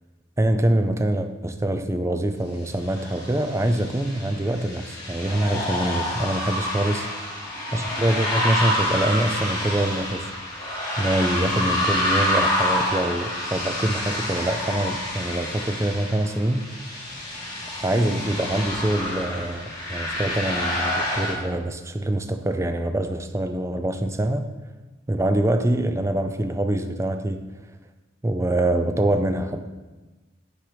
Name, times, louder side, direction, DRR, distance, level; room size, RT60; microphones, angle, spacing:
voice 1, 0.4-7.1 7.7-10.3 11.0-16.7 17.8-24.5 25.1-27.4 28.2-29.7, right 1 dB, 15° right, 8 dB, 0.5 m, -24 dB
sound 1, 2.9-21.3, left 1 dB, 20° left, 2.0 m, -28 dB
6.2 x 6.0 x 5.1 m, 1.2 s
head